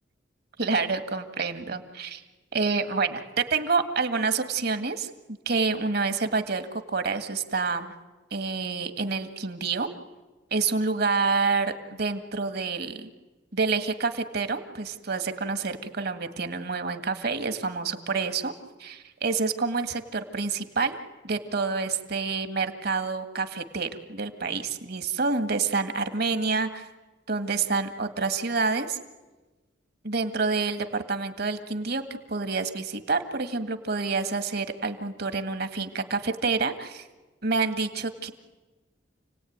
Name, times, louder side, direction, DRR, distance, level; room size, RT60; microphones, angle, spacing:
voice 1, 0.6-2.2 2.5-5.1 5.5-7.9 8.3-9.9 10.5-13.1 13.5-18.5 18.8-21.0 21.2-26.9 27.3-29.0 30.0-32.0 32.3-37.1 37.4-38.3, right 4 dB, 60° right, 9 dB, 1.9 m, -28 dB
29.0 x 18.5 x 9.5 m, 1.2 s
head